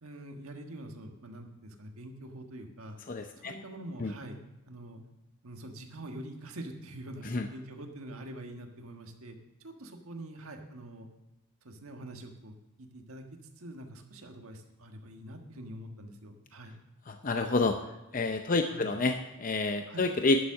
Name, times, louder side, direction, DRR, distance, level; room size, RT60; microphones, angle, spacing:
voice 1, 0.0-3.0 3.4-4.4 4.7-5.0 5.4-11.1 11.6-13.2 13.6-16.7 18.6-19.0 19.9-20.1, right 1 dB, 75° right, 4 dB, 1.5 m, -45 dB
voice 2, 3.1-3.5 4.0-4.1 7.2-7.5 17.1-17.8 18.1-20.4, left 3 dB, 35° left, 5 dB, 0.6 m, -28 dB
11.0 x 7.3 x 6.4 m, 0.96 s
head